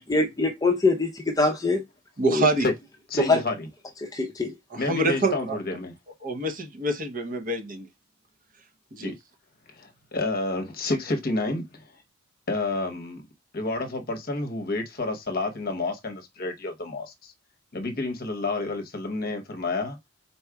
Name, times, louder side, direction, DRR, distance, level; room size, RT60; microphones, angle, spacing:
voice 1, 0.1-1.8 2.3-2.4 3.3-3.4 4.1-4.5, left 3 dB, 15° left, 0.6 m, -23 dB
voice 2, 2.2-2.7 4.7-5.6 6.2-7.9 8.9-9.1, right 2 dB, 40° right, 0.7 m, -26 dB
voice 3, 3.1-3.5 4.8-5.9 9.0-9.1 9.8-11.8 12.5-13.2 13.5-17.3 17.7-20.0, left 2 dB, 40° left, 0.8 m, -29 dB
4.1 x 2.3 x 4.6 m
head